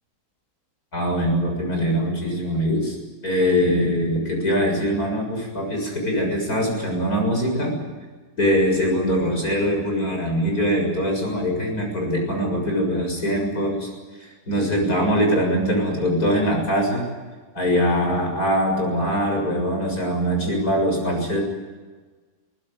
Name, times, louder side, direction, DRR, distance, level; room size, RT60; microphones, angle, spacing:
voice 1, 0.9-3.0 3.2-7.7 8.4-13.9 14.2-17.0 17.5-21.4, equal, 70° left, 2 dB, 7.6 m, -22 dB
22.0 x 19.0 x 9.9 m, 1.4 s
omnidirectional pair, 1.6 m